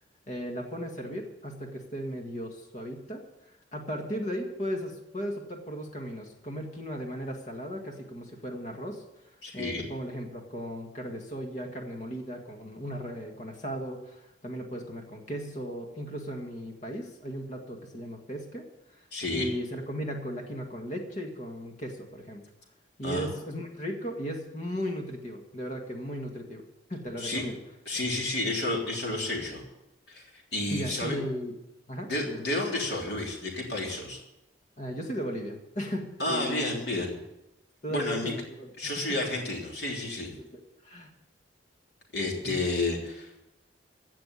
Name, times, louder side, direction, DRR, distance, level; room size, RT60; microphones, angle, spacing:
voice 1, 0.3-9.0 9.5-18.7 19.0-22.4 23.0-26.6 26.9-27.6 30.7-31.6 31.9-32.4 34.8-36.7 37.8-39.3 40.4-41.1 42.4-42.5, equal, 35° left, 3 dB, 1.8 m, -36 dB
voice 2, 9.4-9.8 19.1-19.5 23.0-23.3 27.2-27.4 27.9-29.6 30.1-30.2 30.5-31.2 32.1-34.2 36.2-37.2 37.9-38.3 38.8-40.3 42.1-43.4, left 2 dB, 55° left, -1 dB, 3.5 m, -31 dB
16.0 x 6.0 x 9.8 m, 0.93 s
head